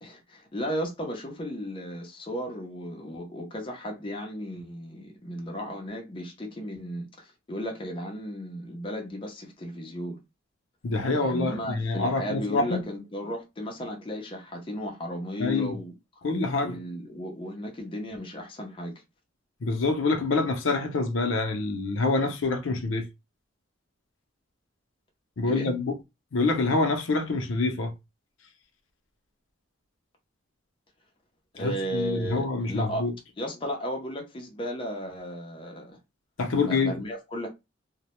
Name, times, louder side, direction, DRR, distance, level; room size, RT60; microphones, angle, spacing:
voice 1, 0.0-10.2 11.1-15.9 16.6-18.9 25.4-25.7 31.6-33.1 33.4-36.0 36.6-37.5, equal, 25° left, 0.5 m, -35 dB
voice 2, 10.8-12.8 15.4-15.7 16.2-16.8 19.6-23.1 25.4-25.9 26.3-27.9 31.6-33.1 36.4-37.0, left 3 dB, 80° left, 0.5 m, -26 dB
2.1 x 2.0 x 2.9 m
head